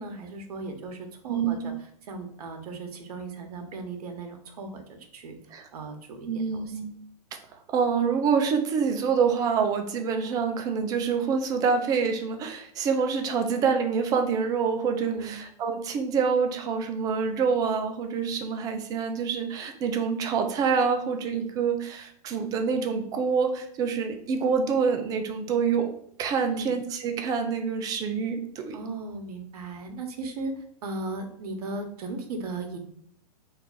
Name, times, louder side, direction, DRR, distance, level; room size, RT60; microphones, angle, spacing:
voice 1, 0.0-1.7 2.0-5.3 5.7-6.8 15.0-15.4 26.4-26.7 28.7-30.5 30.8-32.8, right 3 dB, 70° right, 5 dB, 0.8 m, -36 dB
voice 2, 1.3-1.7 5.5-5.7 6.3-6.9 7.7-25.9 26.2-28.8, right 6 dB, 20° right, 5 dB, 0.3 m, -26 dB
2.8 x 2.4 x 3.6 m, 0.64 s
hypercardioid pair, 140°, 21 cm